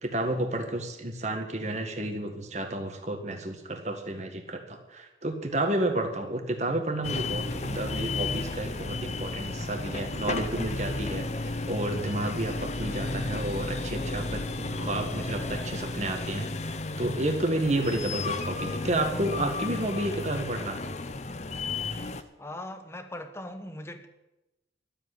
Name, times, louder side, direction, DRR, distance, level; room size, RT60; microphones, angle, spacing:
voice 1, 0.0-20.8, right 1 dB, 40° right, 5 dB, 1.8 m, -31 dB
sound 1, 7.0-22.2, left 3 dB, 40° left, 0.7 m, -33 dB
voice 2, 22.4-24.1, left 1 dB, 15° left, 8 dB, 1.1 m, -40 dB
12.5 x 7.8 x 9.6 m, 0.97 s
head